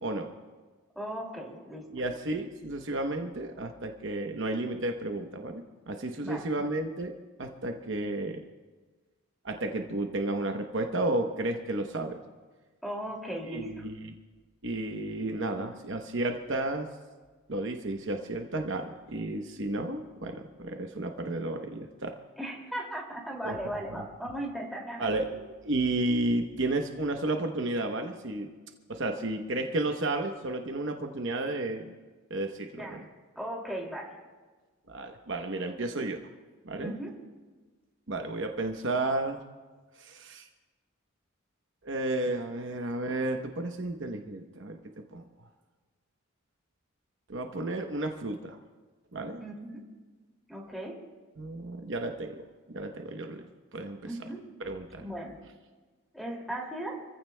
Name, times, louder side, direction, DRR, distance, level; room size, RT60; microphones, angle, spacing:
voice 1, 0.0-0.3 1.9-7.1 7.4-8.4 9.4-12.2 13.5-14.1 14.6-16.9 17.5-22.2 23.4-23.6 25.0-28.5 28.9-31.9 32.3-33.1 34.9-36.2 36.6-36.9 38.1-39.4 40.0-40.5 41.8-44.8 45.1-45.2 47.3-48.6 49.1-49.4 51.4-52.4 52.7-53.5 53.7-54.0 54.6-55.0, right 2 dB, 55° right, 4 dB, 0.9 m, -32 dB
voice 2, 1.0-1.9 6.2-6.5 12.8-13.8 22.4-25.1 32.8-34.2 36.8-37.2 49.4-49.8 50.5-51.0 54.0-54.4 55.0-55.4 56.1-57.0, right 1 dB, ahead, -3 dB, 2.4 m, -37 dB
28.0 x 15.5 x 2.2 m, 1.4 s
head